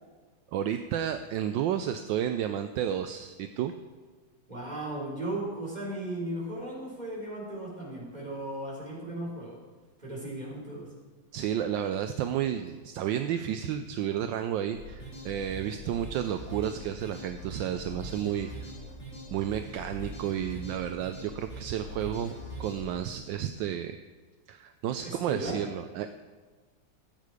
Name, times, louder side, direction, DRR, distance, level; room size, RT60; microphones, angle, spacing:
voice 1, 0.5-3.7 11.3-18.5 19.3-22.3 22.6-24.0 24.5-26.1, right 10 dB, 75° right, 8 dB, 1.2 m, -31 dB
voice 2, 4.5-9.6 10.0-10.9 25.0-25.6, right 1 dB, 20° right, -5 dB, 4.0 m, -36 dB
sound 1, 14.7-22.9, equal, 45° left, 4.8 m, -42 dB
14.0 x 8.4 x 4.9 m, 1.4 s
omnidirectional pair, 2.1 m